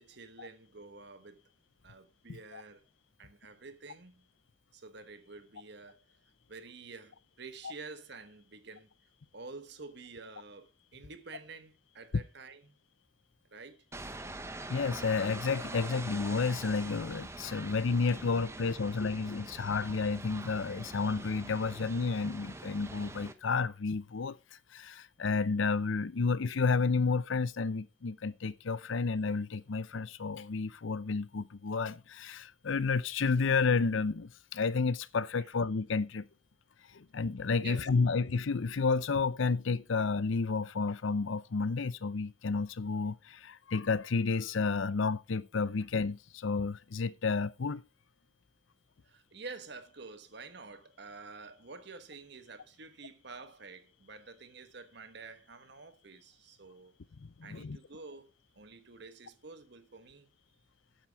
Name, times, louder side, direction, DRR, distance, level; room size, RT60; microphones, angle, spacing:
voice 1, 0.0-1.4 1.8-2.8 3.2-4.2 4.7-6.0 6.5-8.9 9.3-12.8 13.5-13.8 35.4-35.5 37.6-37.9 49.0-56.9 57.4-60.3, right 4 dB, 55° right, 1.2 m, -49 dB
sound 1, 13.9-23.3, right 2 dB, 15° right, 0.7 m, -44 dB
voice 2, 14.7-24.4 24.7-36.2 36.9-47.8 57.2-57.8, left 4 dB, 70° left, 0.6 m, -31 dB
8.9 x 7.6 x 4.6 m
head